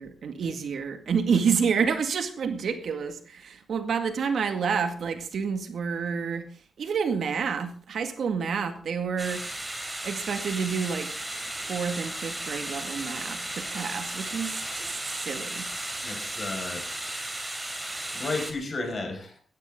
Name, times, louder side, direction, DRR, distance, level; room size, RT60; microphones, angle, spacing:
voice 1, 0.0-6.5 6.8-9.4 10.0-11.1 11.7-15.7, right 6 dB, 75° right, 8 dB, 2.0 m, -29 dB
sound 1, 9.2-18.5, right 1 dB, 15° right, 3.5 m, -35 dB
voice 2, 16.0-16.9 18.1-19.4, left 3 dB, 45° left, 4 dB, 5.7 m, -33 dB
17.0 x 13.5 x 3.8 m, 0.39 s
cardioid pair, 90°, 0 cm